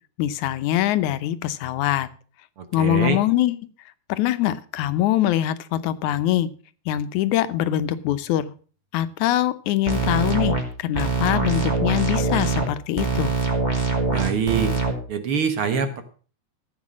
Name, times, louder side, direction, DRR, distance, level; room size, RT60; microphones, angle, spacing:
voice 1, 0.2-2.1 2.7-3.6 4.1-6.5 6.9-8.5 8.9-13.3, left 13 dB, 85° left, 13 dB, 2.2 m, -23 dB
voice 2, 2.6-3.2 14.1-14.7 15.1-16.0, right 6 dB, 55° right, 9 dB, 1.8 m, -24 dB
sound 1, 9.9-10.6 11.0-12.7 13.0-14.9, right 4 dB, 15° right, 2.4 m, -23 dB
14.5 x 8.4 x 6.2 m, 0.41 s
omnidirectional pair, 3.3 m